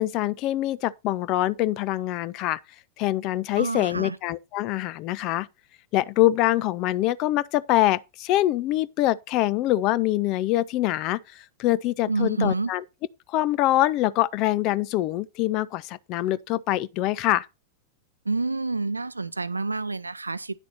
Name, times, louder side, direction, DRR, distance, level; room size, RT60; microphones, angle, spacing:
voice 1, 0.0-2.6 3.0-5.5 5.9-12.8 13.3-17.5, left 15 dB, 40° left, 0.5 m, -24 dB
voice 2, 3.6-4.2 12.1-12.7 18.2-20.5, right 3 dB, 80° right, 0.5 m, -28 dB
10.0 x 6.5 x 4.1 m
figure-of-eight pair, 90°, 0 cm